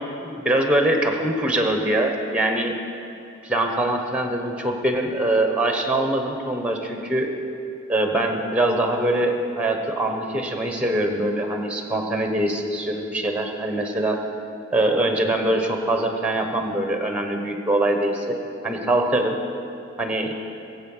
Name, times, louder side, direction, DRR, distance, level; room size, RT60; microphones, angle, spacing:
voice 1, 0.0-2.7 3.4-7.3 7.9-14.2 14.7-18.4 18.6-19.4 20.0-20.3, right 1 dB, 5° right, 3 dB, 1.2 m, -23 dB
21.5 x 7.8 x 5.6 m, 2.6 s
head